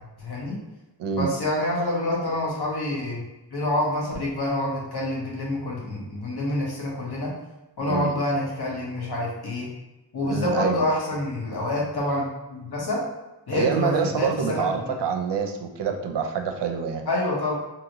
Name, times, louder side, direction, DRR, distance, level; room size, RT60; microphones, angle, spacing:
voice 1, 0.2-0.6 1.2-3.2 3.5-7.3 7.8-9.7 10.1-12.2 12.5-13.0 13.5-14.9 17.1-17.5, left 1 dB, 65° left, -3 dB, 1.0 m, -27 dB
voice 2, 1.0-1.3 7.9-8.1 10.2-10.8 13.5-17.0, right 6 dB, 70° right, 5 dB, 0.5 m, -26 dB
2.8 x 2.6 x 2.9 m, 1.0 s
wide cardioid pair, 75°, 42 cm